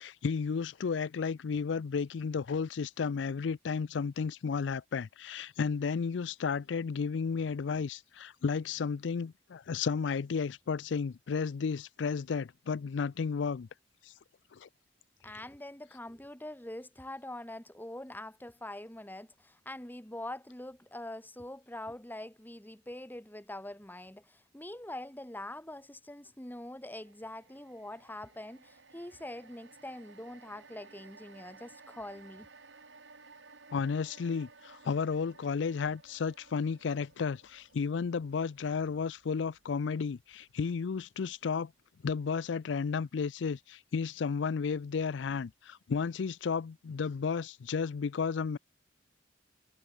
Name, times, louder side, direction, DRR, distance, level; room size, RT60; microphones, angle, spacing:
voice 1, 0.0-13.7 14.5-14.7 33.7-41.7 42.0-48.6, left 5 dB, 75° left, 0.4 m, -33 dB
voice 2, 15.2-32.5, left 1 dB, 10° left, 2.2 m, -44 dB
sound 1, 26.9-41.2 41.6-41.7, right 4 dB, 80° right, 4.2 m, -58 dB
head